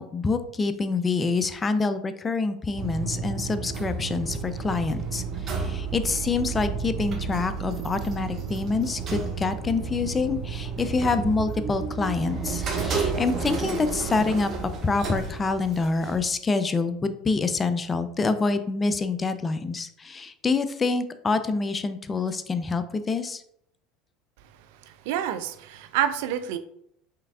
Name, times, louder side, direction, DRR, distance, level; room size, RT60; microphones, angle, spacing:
voice 1, 0.0-23.4, left 4 dB, 25° left, 11 dB, 0.4 m, -26 dB
sound 1, 2.7-16.2, right 5 dB, 40° right, 0.9 m, -31 dB
voice 2, 25.1-26.6, right 10 dB, 70° right, 11 dB, 0.3 m, -27 dB
4.6 x 3.4 x 2.3 m, 0.72 s
hypercardioid pair, 80°, 0 cm